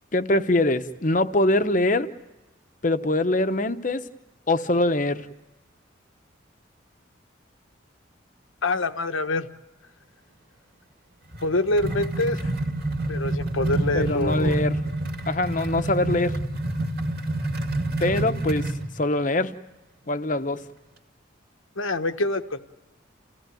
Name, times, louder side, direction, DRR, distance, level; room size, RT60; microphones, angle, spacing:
voice 1, 0.1-2.1 2.8-4.0 4.5-5.3 13.9-14.8 15.3-16.4 18.0-18.7 19.0-19.5 20.1-20.6, left 2 dB, 40° left, 9 dB, 0.9 m, -23 dB
voice 2, 8.6-9.5 11.4-12.4 13.1-14.6 21.8-22.6, left 2 dB, 80° left, 9 dB, 1.2 m, -25 dB
sound 1, 11.3-18.9, right 1 dB, 50° right, 2.5 m, -28 dB
29.0 x 16.0 x 9.2 m, 1.0 s
head